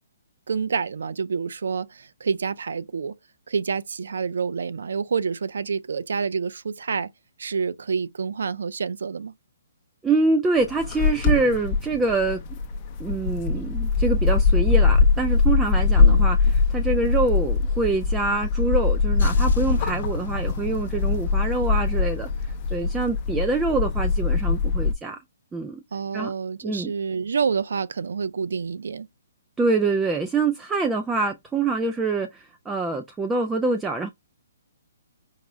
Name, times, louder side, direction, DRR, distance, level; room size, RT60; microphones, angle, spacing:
voice 1, 0.5-3.2 3.5-7.1 7.4-9.3 16.0-16.3 25.9-29.1, right 5 dB, 75° right, 0.5 m, -28 dB
voice 2, 10.0-12.4 13.0-16.4 16.7-25.2 25.5-25.8 26.1-26.3 26.6-26.9 29.6-34.1, right 3 dB, 5° right, 0.3 m, -25 dB
sound 1, 10.6-24.9, left 4 dB, 20° left, 0.7 m, -22 dB
sound 2, 19.2-23.3, left 4 dB, 55° left, 0.7 m, -32 dB
4.8 x 2.1 x 3.5 m
hypercardioid pair, 170°, 0 cm